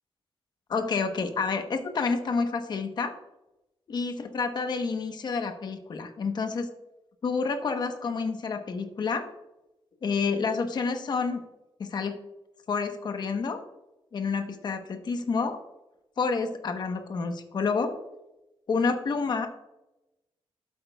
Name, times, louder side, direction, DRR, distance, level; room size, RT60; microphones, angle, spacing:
voice 1, 0.7-3.1 3.9-6.7 7.2-9.3 10.0-11.4 11.8-12.2 12.7-13.6 14.1-15.6 16.2-17.9 18.7-19.5, left 4 dB, 45° left, 6 dB, 1.0 m, -29 dB
12.5 x 8.2 x 2.3 m, 0.94 s
wide cardioid pair, 160°, 10 cm